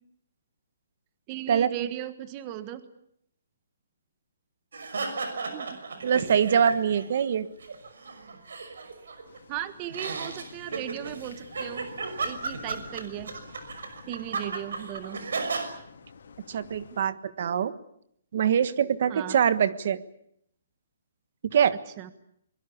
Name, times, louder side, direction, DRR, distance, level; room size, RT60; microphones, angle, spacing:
voice 1, 1.3-2.8 5.4-6.0 9.5-11.9 12.2-13.3 14.1-15.2 19.1-19.4 22.0-22.1, right 12 dB, 20° right, 12 dB, 1.4 m, -37 dB
sound 1, 4.7-7.1 7.4-9.4 9.9-15.7, right 4 dB, 75° right, 6.0 m, -34 dB
voice 2, 6.0-7.5 14.4-14.5 16.5-17.7 18.3-20.0 21.5-21.8, right 8 dB, 45° right, 14 dB, 1.4 m, -24 dB
sound 2, 9.2-17.0, left 5 dB, 65° left, 4.4 m, -50 dB
24.0 x 22.5 x 8.6 m, 0.70 s
hypercardioid pair, 175°, 0 cm